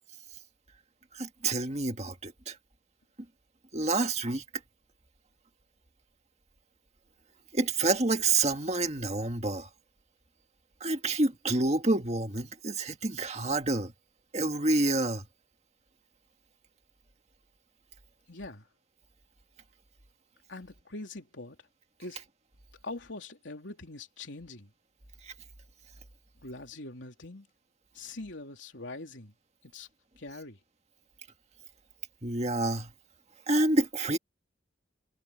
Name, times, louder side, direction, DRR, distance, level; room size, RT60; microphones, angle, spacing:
voice 1, 1.1-2.6 3.7-4.4 7.5-9.7 10.8-13.9 14.3-15.3 25.2-25.3 32.2-32.9 33.5-34.2, right 2 dB, 35° right, 1.9 m, -28 dB
voice 2, 18.3-18.7 20.5-21.6 22.0-22.2 22.8-24.7 26.4-27.5 27.9-29.3 29.6-29.9 30.2-30.6, left 2 dB, 80° left, 3.4 m, -43 dB
head